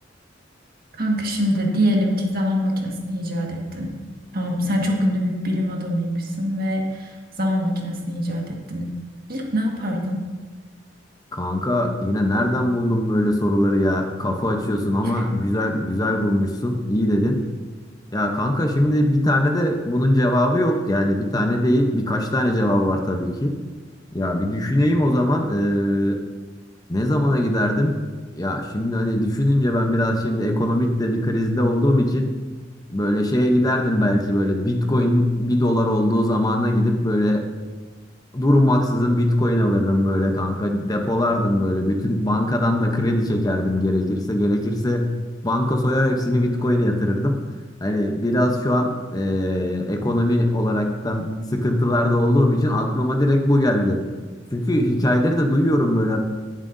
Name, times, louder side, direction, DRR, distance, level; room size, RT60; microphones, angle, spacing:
voice 1, 1.0-3.9 4.3-8.9 9.3-10.2 15.0-15.2, equal, 55° right, 0 dB, 1.7 m, -24 dB
voice 2, 11.3-17.4 18.1-23.5 24.1-26.2 26.9-28.0 28.3-32.3 32.9-37.4 38.3-45.1 45.4-47.4 47.8-54.0 54.5-56.2, left 1 dB, 20° left, 3 dB, 0.8 m, -21 dB
18.5 x 7.5 x 2.7 m, 1.4 s
head